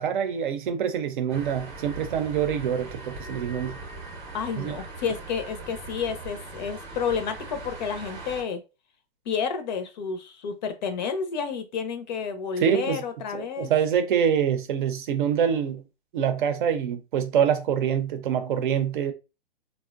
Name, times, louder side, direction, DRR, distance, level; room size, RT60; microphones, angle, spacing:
voice 1, 0.0-3.7 4.6-4.8 12.6-13.0 13.3-15.8 16.1-19.1, right 8 dB, 55° right, 0.6 m, -25 dB
sound 1, 1.3-8.4, right 2 dB, 15° right, 0.7 m, -40 dB
voice 2, 4.3-8.6 9.3-13.7, left 6 dB, 45° left, 0.6 m, -30 dB
3.6 x 2.1 x 2.4 m
hypercardioid pair, 130°, 31 cm